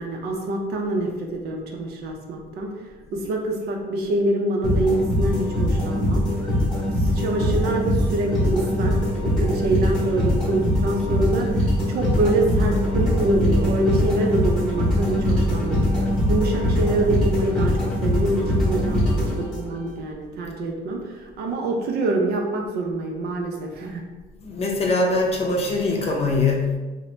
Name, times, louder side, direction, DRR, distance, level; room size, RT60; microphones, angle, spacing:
voice 1, 0.0-6.2 6.9-15.9 16.3-24.0, right 2 dB, 70° right, 1 dB, 0.6 m, -25 dB
sound 1, 4.6-19.9, left 1 dB, 5° left, 1.0 m, -22 dB
voice 2, 24.4-26.8, left 3 dB, 35° left, 0 dB, 0.6 m, -22 dB
2.8 x 2.1 x 3.1 m, 1.2 s
cardioid pair, 110°, 17 cm